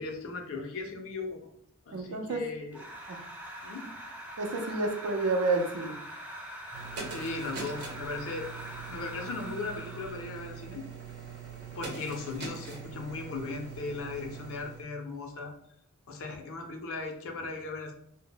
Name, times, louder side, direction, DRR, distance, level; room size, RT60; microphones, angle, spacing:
voice 1, 0.0-1.5 1.9-2.8 3.6-3.9 7.0-8.5 8.9-10.9 11.7-15.5 16.1-17.9, left 3 dB, 65° left, 4 dB, 0.5 m, -37 dB
voice 2, 1.9-2.4 3.1-3.2 4.4-6.0, right 3 dB, 90° right, 4 dB, 0.5 m, -29 dB
sound 1, 2.7-10.4, right 1 dB, 5° right, 0.4 m, -43 dB
sound 2, 6.7-14.8, right 5 dB, 50° right, 0.8 m, -43 dB
2.0 x 2.0 x 3.7 m, 0.71 s
head